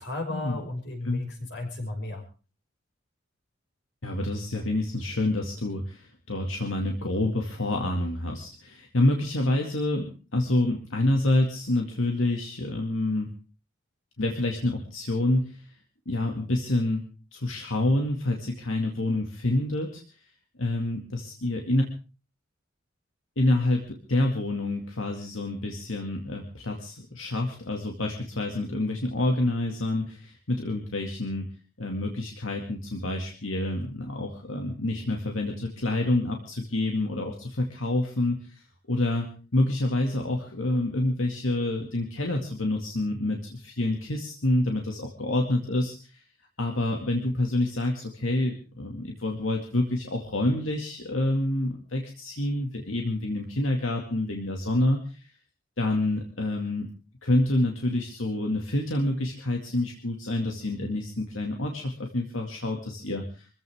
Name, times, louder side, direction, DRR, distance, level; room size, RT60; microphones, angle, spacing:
voice 1, 0.0-2.2, left 2 dB, 60° left, 3 dB, 5.7 m, -34 dB
voice 2, 4.0-13.3 14.2-15.7 16.1-17.0 17.3-20.0 20.6-21.8 23.4-31.5 31.8-46.2 46.6-55.3 55.8-56.9 57.2-63.5, left 1 dB, 85° left, 2 dB, 2.3 m, -27 dB
24.5 x 15.0 x 3.6 m, 0.36 s
head